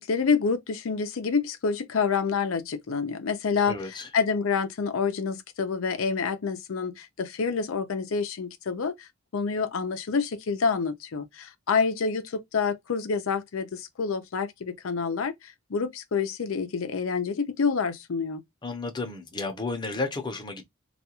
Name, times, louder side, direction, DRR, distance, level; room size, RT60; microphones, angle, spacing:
voice 1, 0.0-3.7 4.1-9.1 9.3-15.3 15.7-18.4, left 5 dB, 90° left, 0.5 m, -27 dB
voice 2, 3.7-4.1 18.6-20.6, left 3 dB, 20° left, 0.6 m, -32 dB
2.4 x 2.2 x 2.8 m
head